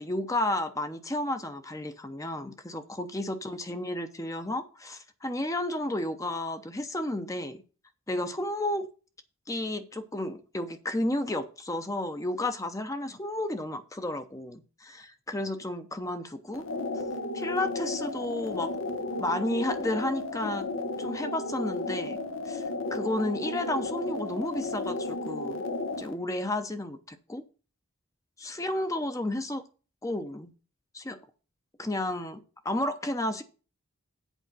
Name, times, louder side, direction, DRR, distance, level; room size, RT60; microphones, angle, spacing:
voice 1, 0.0-7.6 8.1-8.9 9.5-16.7 17.3-18.7 19.2-20.7 21.0-22.6 22.9-25.6 26.0-27.4 28.4-29.6 30.0-30.5 30.9-31.2 31.8-33.4, left 1 dB, 15° left, 0.7 m, -32 dB
sound 1, 16.5-26.1, left 2 dB, 75° left, 1.2 m, -33 dB
8.2 x 4.9 x 7.5 m
head